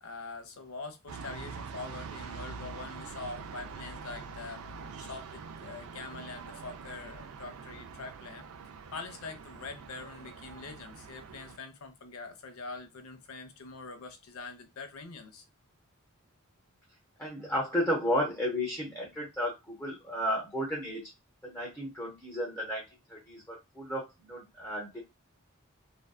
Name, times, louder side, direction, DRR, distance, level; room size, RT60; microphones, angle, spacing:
voice 1, 0.0-4.6 5.0-8.5 8.9-15.4, left 3 dB, 75° left, 0.6 m, -44 dB
sound 1, 1.1-11.6, right 5 dB, 85° right, 0.4 m, -45 dB
voice 2, 17.2-21.0 21.4-22.8 23.1-25.0, equal, 10° left, 0.7 m, -33 dB
2.6 x 2.2 x 2.3 m
head